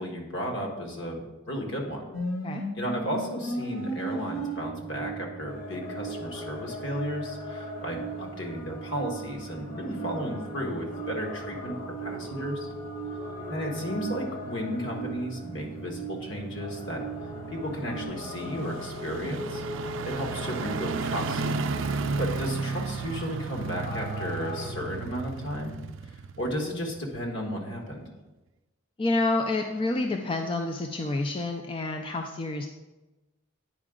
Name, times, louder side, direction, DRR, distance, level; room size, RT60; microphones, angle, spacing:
voice 1, 0.0-2.1 2.8-12.7 13.5-17.0 17.5-19.6 20.0-21.4 21.9-25.7 26.4-28.0, equal, 60° left, 1 dB, 1.5 m, -34 dB
sound 1, 2.1-18.0, right 4 dB, 90° left, 1.1 m, -38 dB
sound 2, 5.5-24.7, left 3 dB, 40° left, 1.3 m, -41 dB
sound 3, 10.8-27.3 27.7-27.8, right 4 dB, 65° right, 0.4 m, -36 dB
voice 2, 29.0-32.7, left 2 dB, 25° left, 3 dB, 0.4 m, -28 dB
9.5 x 4.9 x 3.7 m, 1.1 s
head